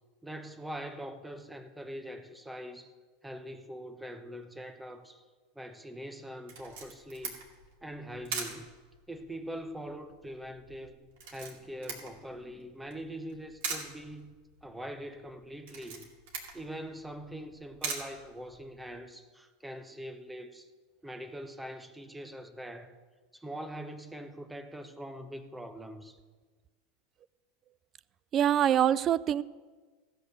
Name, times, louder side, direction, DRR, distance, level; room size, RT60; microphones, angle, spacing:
voice 1, 0.2-2.9 3.2-5.2 5.5-7.4 7.8-8.7 9.1-14.3 14.6-16.1 16.5-20.7 21.0-22.9 23.3-26.2, equal, 5° right, 8 dB, 1.1 m, -43 dB
Camera, 6.5-19.0, right 5 dB, 70° right, 2.4 m, -43 dB
voice 2, 28.3-29.4, right 10 dB, 40° right, 19 dB, 0.4 m, -24 dB
14.5 x 6.6 x 6.6 m, 1.4 s
hypercardioid pair, 95°, 0 cm